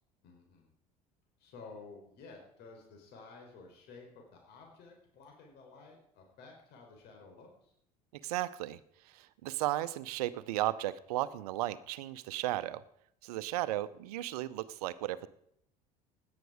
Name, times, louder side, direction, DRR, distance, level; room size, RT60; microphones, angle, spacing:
voice 1, 0.2-0.7 1.4-7.7, left 4 dB, 60° left, 1 dB, 4.3 m, -53 dB
voice 2, 8.2-8.8 9.1-12.8 13.2-15.3, right 15 dB, 75° right, 16 dB, 0.8 m, -35 dB
17.0 x 10.5 x 5.0 m, 0.73 s
hypercardioid pair, 65°, 20 cm